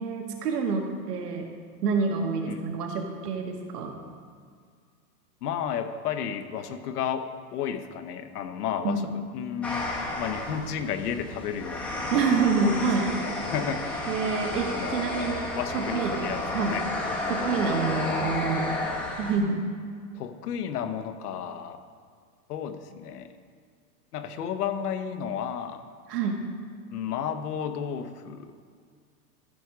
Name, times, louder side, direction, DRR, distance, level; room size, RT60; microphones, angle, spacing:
voice 1, 0.0-1.5 1.8-3.9 8.8-9.1 12.1-13.1 14.1-16.8 17.3-18.9 19.2-19.6 26.1-26.4, right 5 dB, 70° right, 2 dB, 1.9 m, -27 dB
voice 2, 5.4-9.0 9.3-12.2 12.6-13.1 13.4-13.9 14.7-16.8 20.1-21.8 22.5-23.3 24.1-25.8 26.9-28.5, left 8 dB, 65° left, 7 dB, 1.1 m, -33 dB
sound 1, 9.6-19.4, left 2 dB, 5° left, 0.9 m, -32 dB
14.5 x 5.3 x 4.9 m, 2.1 s
hypercardioid pair, 150°, 50 cm